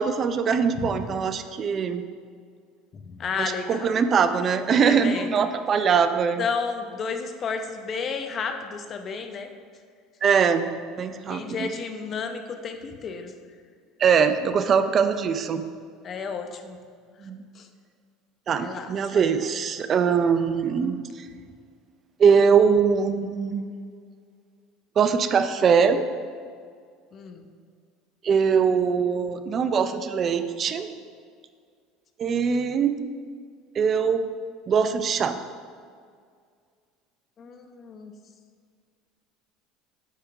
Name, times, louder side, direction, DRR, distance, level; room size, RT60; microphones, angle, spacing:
voice 1, 0.0-2.0 3.4-6.5 10.2-10.7 11.0-11.7 14.0-15.6 17.2-17.4 18.5-21.0 22.2-23.7 25.0-26.1 28.2-30.9 32.2-33.0 33.8-34.3 34.7-35.4, right 6 dB, 40° right, 10 dB, 0.4 m, -22 dB
voice 2, 2.9-3.9 4.7-5.5 6.4-9.5 11.3-13.3 16.0-16.8 17.6-17.7 18.6-19.2 27.1-27.4 37.4-38.1, left 5 dB, 40° left, 6 dB, 0.7 m, -32 dB
8.4 x 3.6 x 5.8 m, 2.1 s
supercardioid pair, 105°, 0 cm